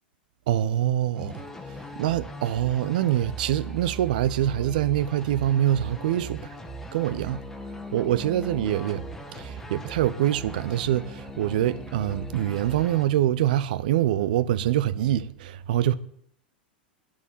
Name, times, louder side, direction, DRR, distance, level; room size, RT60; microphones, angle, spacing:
voice 1, 0.5-6.5 6.9-7.4 7.9-15.9, right 12 dB, 60° right, 0.9 m, -25 dB
sound 1, 1.2-13.1, right 1 dB, 5° left, 1.7 m, -39 dB
10.5 x 8.2 x 9.3 m
figure-of-eight pair, 90°, 5 cm